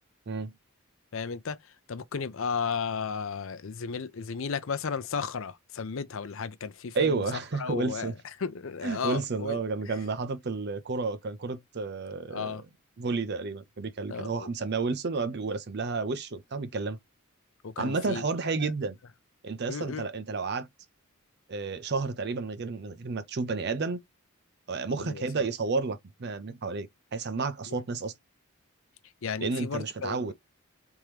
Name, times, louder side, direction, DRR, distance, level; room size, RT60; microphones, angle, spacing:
voice 1, 1.1-1.6 1.9-7.2 7.6-8.1 8.4-9.6 9.8-9.9 12.3-12.6 14.1-14.5 17.6-18.3 18.6-18.7 19.7-20.0 24.9-25.3 27.7-27.8 29.2-30.3, left 5 dB, 65° left, 0.5 m, -34 dB
voice 2, 6.9-8.1 8.8-12.6 13.0-17.0 17.8-19.0 19.4-20.7 21.5-24.0 24.7-28.1 29.4-30.3, right 4 dB, 50° right, 0.6 m, -31 dB
3.6 x 3.0 x 3.1 m
head